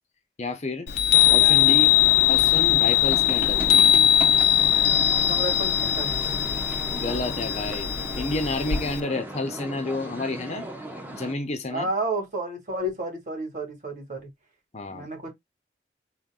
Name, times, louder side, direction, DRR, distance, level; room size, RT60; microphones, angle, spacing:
voice 1, 0.4-0.9 1.3-1.9 2.3-3.7 6.9-7.9 8.1-10.6 11.1-11.9 14.7-15.1, left 2 dB, 40° left, 0.7 m, -30 dB
Chime, 0.9-9.0, left 11 dB, 75° left, 0.6 m, -20 dB
sound 1, 1.1-11.3, right 1 dB, 10° right, 0.7 m, -35 dB
voice 2, 5.1-6.2 11.7-14.3 14.9-15.3, right 1 dB, 45° right, 2.4 m, -31 dB
3.8 x 2.5 x 3.7 m
head